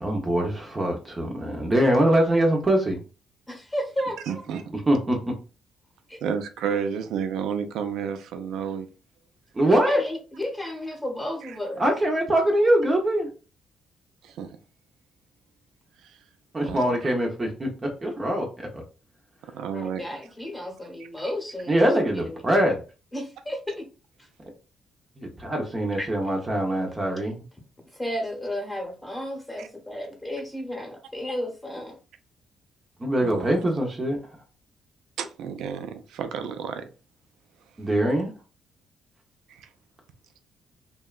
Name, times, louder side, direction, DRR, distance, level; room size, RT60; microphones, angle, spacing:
voice 1, 0.0-3.0 4.9-5.2 9.6-10.0 11.8-13.3 16.5-17.7 18.0-18.5 18.7-18.8 21.7-22.8 25.2-27.4 33.0-34.2 37.8-38.3, right 1 dB, 25° right, 0.6 m, -23 dB
voice 2, 3.5-4.4 6.1-6.2 9.7-11.8 19.7-22.4 23.1-23.9 24.2-24.3 26.0-26.3 27.9-32.0, left 1 dB, 10° left, 0.9 m, -33 dB
voice 3, 4.3-4.6 6.2-8.9 11.4-11.5 14.2-14.6 16.0-16.2 16.6-17.1 19.5-20.0 29.6-29.7 33.2-33.6 35.2-36.9 39.5-39.7, right 7 dB, 80° right, 0.4 m, -31 dB
2.7 x 2.1 x 2.2 m
cardioid pair, 90°, 0 cm